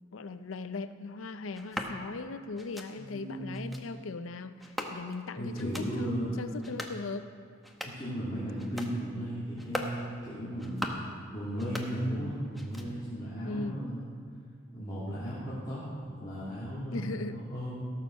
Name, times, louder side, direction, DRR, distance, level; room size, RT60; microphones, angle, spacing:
voice 1, 0.1-7.3 13.4-13.8 16.9-17.4, left 3 dB, 80° left, 11 dB, 0.6 m, -39 dB
sound 1, 1.5-1.9 2.6-2.9 3.5-3.8 4.6-5.2 5.5-5.9 6.5-7.0 7.5-8.1 8.6-8.9 9.5-10.0 10.5-11.1 11.5-12.3 12.5-13.1, equal, ahead, 0.9 m, -40 dB
voice 2, 3.0-3.6 5.4-6.4 7.8-10.9 11.3-14.0 14.7-15.8 16.1-17.8, equal, 20° left, -12 dB, 2.8 m, -35 dB
17.0 x 7.1 x 6.3 m, 2.2 s
head